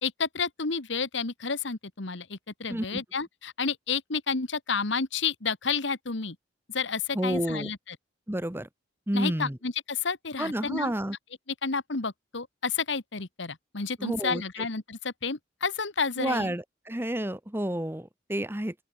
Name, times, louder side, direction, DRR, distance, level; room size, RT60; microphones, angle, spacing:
voice 1, 0.0-6.4 6.7-8.0 9.1-10.9 11.6-16.5, left 5 dB, 65° left, 1.6 m, -31 dB
voice 2, 2.7-3.0 7.1-7.7 8.3-8.7 9.1-9.6 10.4-11.2 14.0-14.7 16.2-18.7, right 1 dB, 10° right, 1.2 m, -30 dB
open air
head